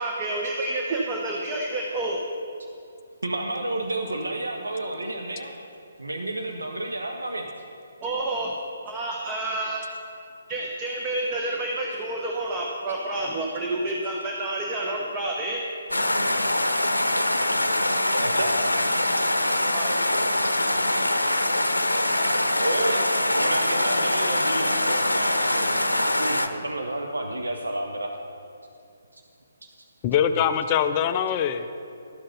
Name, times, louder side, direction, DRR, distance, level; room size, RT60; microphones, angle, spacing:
voice 1, 0.0-2.2 8.0-8.5 8.8-9.9 10.5-15.6 19.7-20.0, right 2 dB, 20° right, -1 dB, 0.9 m, -29 dB
voice 2, 3.2-5.5 6.0-7.5 18.2-18.6 20.8-20.9 22.5-28.2 29.1-29.2, right 1 dB, 75° right, 3 dB, 0.8 m, -31 dB
sound 1, 15.9-26.5, left 1 dB, 80° left, 0.6 m, -23 dB
voice 3, 30.0-31.7, left 8 dB, 25° left, 9 dB, 0.4 m, -23 dB
12.5 x 6.4 x 5.4 m, 2.6 s
figure-of-eight pair, 135°, 0 cm